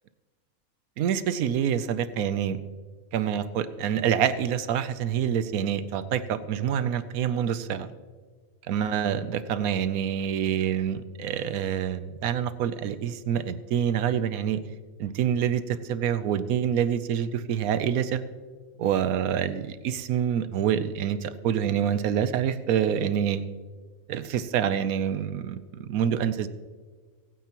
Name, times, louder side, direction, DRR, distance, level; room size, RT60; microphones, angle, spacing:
voice 1, 1.0-2.6 3.1-7.9 8.7-14.6 15.0-18.2 18.8-23.5 24.1-26.5, right 9 dB, 90° right, 13 dB, 1.1 m, -26 dB
24.0 x 9.4 x 3.0 m, 1.5 s
omnidirectional pair, 1.5 m